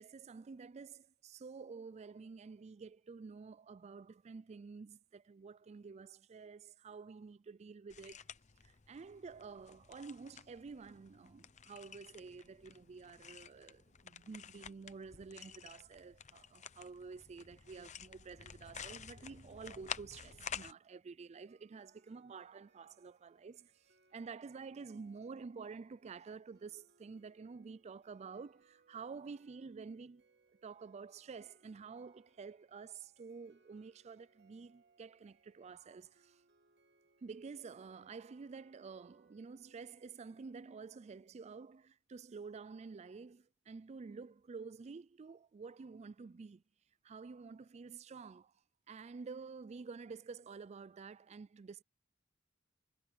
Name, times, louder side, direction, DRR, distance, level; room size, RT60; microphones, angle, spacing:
voice 1, 0.0-8.3 8.6-23.7 24.1-30.2 30.6-36.4 37.2-46.6 47.0-48.5 48.9-51.8, right 5 dB, 35° right, 0.4 m, -50 dB
sound 1, 7.9-20.7, left 7 dB, 35° left, 0.8 m, -51 dB
sound 2, 21.5-40.7, right 4 dB, 55° right, 1.6 m, -72 dB
head